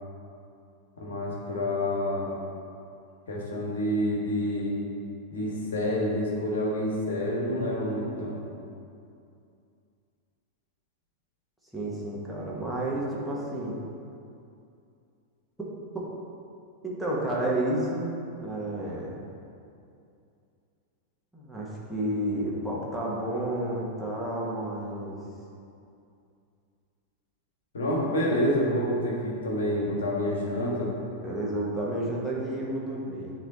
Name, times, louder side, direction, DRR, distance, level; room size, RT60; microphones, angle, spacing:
voice 1, 1.0-2.3 3.3-4.8 5.3-8.4 27.7-30.9, left 1 dB, 65° left, -3 dB, 1.5 m, -28 dB
voice 2, 11.7-13.8 15.9-16.1 16.8-19.2 21.3-25.2 31.2-33.3, right 1 dB, ahead, -6 dB, 1.5 m, -31 dB
9.7 x 3.3 x 4.2 m, 2.5 s
figure-of-eight pair, 90°, 0 cm